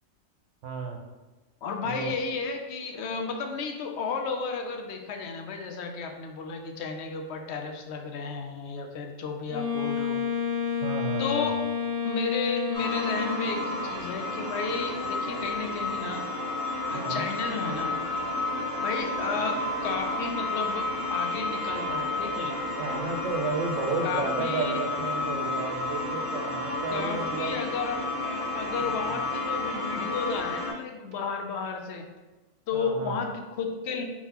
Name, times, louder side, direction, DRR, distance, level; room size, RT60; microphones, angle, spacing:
voice 1, 0.6-1.0 1.8-2.1 10.8-11.5 16.9-17.3 22.8-27.6 28.8-29.2 32.7-33.2, right 4 dB, 65° right, 3 dB, 0.9 m, -32 dB
voice 2, 1.6-10.2 11.2-11.6 12.0-16.2 16.9-18.0 18.8-22.5 24.0-24.8 26.9-32.1 32.7-34.0, left 4 dB, 65° left, 5 dB, 0.7 m, -33 dB
Wind instrument woodwind instrument, 9.5-13.8, left 7 dB, 10° right, 1.1 m, -30 dB
sound 1, 12.7-30.7, left 2 dB, 85° left, 2.1 m, -31 dB
4.4 x 3.8 x 2.8 m, 1.2 s
omnidirectional pair, 1.4 m